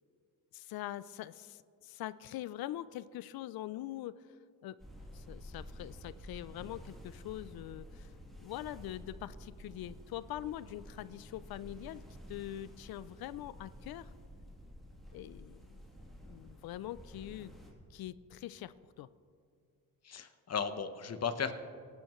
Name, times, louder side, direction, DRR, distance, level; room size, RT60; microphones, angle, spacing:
voice 1, 0.5-4.2 4.6-4.8 5.1-8.1 8.4-14.1 15.1-15.8 16.2-17.5 17.9-19.1, left 13 dB, 75° left, 17 dB, 0.5 m, -43 dB
sound 1, 4.8-17.7, equal, ahead, 2.9 m, -51 dB
voice 2, 20.0-21.5, left 6 dB, 45° left, 9 dB, 1.0 m, -35 dB
24.5 x 12.0 x 3.1 m, 2.3 s
cardioid pair, 100°, 37 cm